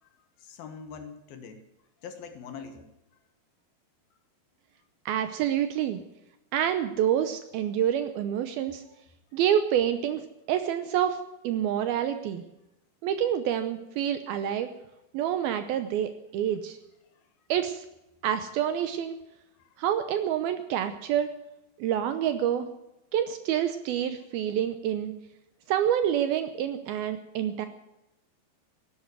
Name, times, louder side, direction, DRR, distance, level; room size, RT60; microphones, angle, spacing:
voice 1, 0.4-1.6 2.0-2.9 17.1-17.2 19.6-19.7, left 6 dB, 65° left, 7 dB, 2.9 m, -43 dB
voice 2, 5.1-6.0 6.5-8.8 9.3-12.4 13.0-14.7 15.1-16.8 17.5-17.9 18.2-19.2 19.8-21.3 21.8-22.7 23.1-25.1 25.7-27.7, right 10 dB, 75° right, 9 dB, 2.4 m, -27 dB
16.0 x 11.5 x 8.0 m, 0.93 s
omnidirectional pair, 5.0 m